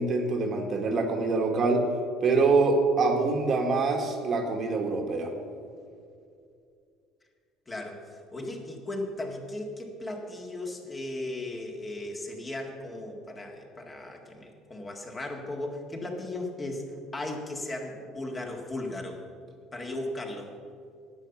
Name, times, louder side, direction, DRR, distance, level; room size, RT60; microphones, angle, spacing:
voice 1, 0.0-1.8 2.2-5.3, right 3 dB, 40° right, 3 dB, 1.6 m, -25 dB
voice 2, 7.7-16.8 17.1-19.2 19.7-20.5, left 2 dB, 20° left, 1 dB, 1.9 m, -36 dB
10.5 x 8.4 x 7.1 m, 2.3 s
cardioid pair, 110°, 0 cm